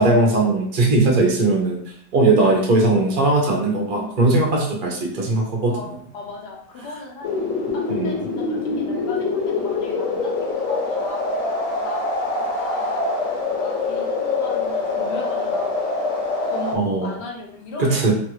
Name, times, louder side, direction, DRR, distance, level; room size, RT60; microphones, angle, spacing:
voice 1, 0.0-1.8 2.1-5.7 7.9-8.2 16.7-17.2 17.8-18.1, right 2 dB, 45° right, -1 dB, 0.7 m, -19 dB
voice 2, 2.4-2.7 5.7-11.2 11.8-13.1 13.6-15.7 16.4-18.1, left 2 dB, 85° left, -1 dB, 1.3 m, -36 dB
sound 1, 7.2-16.8, left 3 dB, 60° left, 1.0 m, -24 dB
3.0 x 2.4 x 3.0 m, 0.63 s
omnidirectional pair, 1.8 m